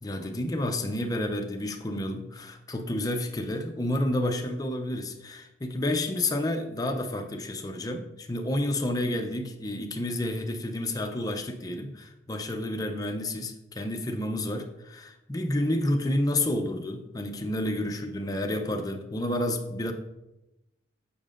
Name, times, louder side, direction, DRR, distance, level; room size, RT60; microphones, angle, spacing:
voice 1, 0.0-19.9, left 1 dB, 20° left, 4 dB, 0.5 m, -30 dB
6.9 x 6.5 x 2.5 m, 0.94 s
head